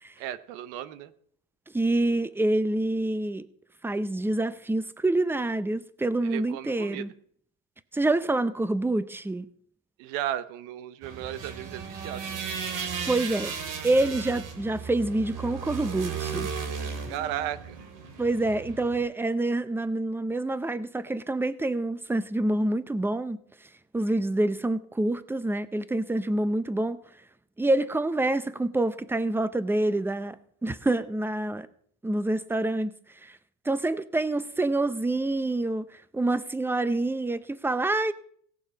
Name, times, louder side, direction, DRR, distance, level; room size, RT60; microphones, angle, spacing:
voice 1, 0.2-1.1 6.2-7.1 10.0-12.4 17.1-17.8, right 12 dB, 85° right, 1.1 m, -35 dB
voice 2, 1.7-3.5 3.8-7.1 7.9-9.5 13.1-13.5 13.8-16.5 18.2-23.4 23.9-27.0 27.6-30.4 30.6-31.7 32.0-32.9 33.2-33.4 33.7-35.9 36.1-38.1, right 2 dB, 5° right, 0.6 m, -27 dB
sound 1, 11.0-19.0, right 6 dB, 50° right, 2.7 m, -35 dB
17.5 x 6.8 x 5.1 m
cardioid pair, 110°, 40 cm